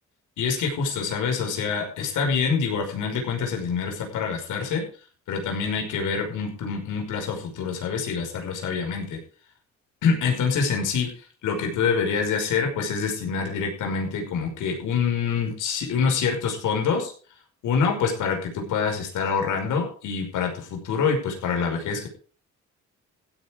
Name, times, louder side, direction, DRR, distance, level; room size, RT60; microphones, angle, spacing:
voice 1, 0.4-4.9 5.3-9.2 10.0-11.1 11.4-17.1 17.6-22.1, left 5 dB, 85° left, 3 dB, 5.6 m, -26 dB
15.5 x 9.7 x 5.2 m, 0.40 s
cardioid pair, 90°, 30 cm